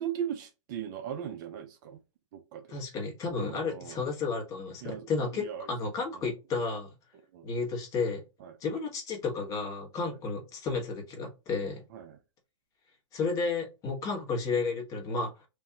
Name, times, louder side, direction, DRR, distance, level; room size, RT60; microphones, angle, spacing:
voice 1, 0.0-2.0 2.3-2.7 3.5-4.0 4.8-5.7 6.1-6.2 7.3-7.5 8.4-8.5 11.9-12.2, right 9 dB, 40° right, 0.5 m, -38 dB
voice 2, 2.7-6.9 7.4-8.2 8.6-11.8 13.1-15.4, left 4 dB, 20° left, 1.2 m, -32 dB
3.5 x 2.6 x 2.7 m
hypercardioid pair, 160°, 15 cm